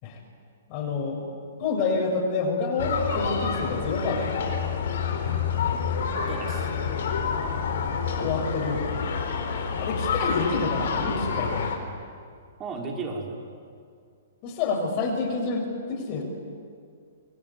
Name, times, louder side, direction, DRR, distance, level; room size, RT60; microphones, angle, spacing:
voice 1, 0.7-1.2 1.6-4.4 8.2-8.9 9.8-11.7 14.4-16.2, left 4 dB, 40° left, 1 dB, 6.6 m, -28 dB
sound 1, 2.8-11.8, left 6 dB, 60° left, 4.1 m, -28 dB
voice 2, 6.3-6.7 8.2-8.4 12.6-13.4, right 4 dB, 25° right, 1 dB, 5.6 m, -34 dB
26.0 x 21.5 x 9.8 m, 2.2 s
figure-of-eight pair, 115°, 0 cm